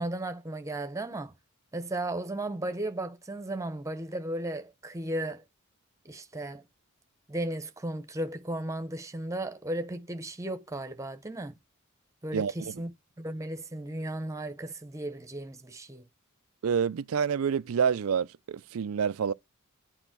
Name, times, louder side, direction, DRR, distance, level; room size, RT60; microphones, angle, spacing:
voice 1, 0.0-1.3 1.7-5.4 6.0-6.7 7.3-11.6 12.2-16.0, right 1 dB, 15° right, 0.9 m, -35 dB
voice 2, 12.3-12.8 16.6-19.3, right 7 dB, 75° right, 0.4 m, -28 dB
9.0 x 4.4 x 6.0 m
head